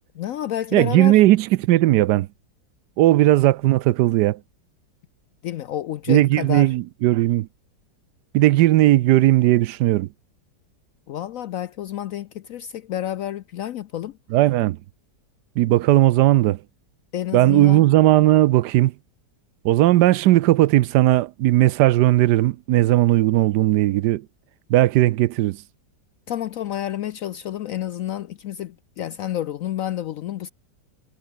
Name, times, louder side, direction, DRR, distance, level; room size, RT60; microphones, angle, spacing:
voice 1, 0.2-1.2 5.4-6.7 11.1-14.2 17.1-17.8 26.3-30.5, left 11 dB, 70° left, 0.8 m, -29 dB
voice 2, 0.7-2.3 3.0-4.4 6.1-7.5 8.3-10.1 14.3-14.8 15.6-16.6 17.3-18.9 19.6-24.2 24.7-25.6, right 15 dB, 75° right, 1.1 m, -17 dB
omnidirectional pair, 1.9 m